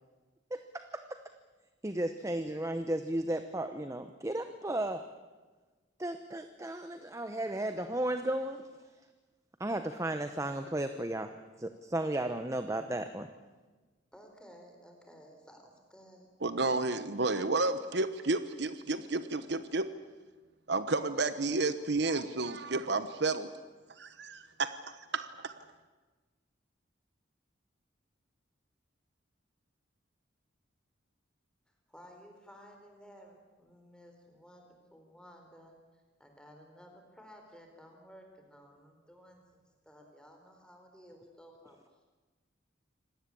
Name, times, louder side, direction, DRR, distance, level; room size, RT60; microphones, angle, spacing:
voice 1, 0.5-1.2 1.8-5.0 6.0-8.6 9.6-11.3 11.6-13.3, right 1 dB, 15° right, 8 dB, 0.9 m, -34 dB
voice 2, 14.1-16.3 31.9-35.8 36.2-42.0, equal, 5° left, 3 dB, 4.3 m, -55 dB
voice 3, 16.4-19.9 20.7-23.5 24.0-25.5, right 3 dB, 60° right, 12 dB, 1.0 m, -31 dB
26.0 x 18.0 x 8.6 m, 1.3 s
head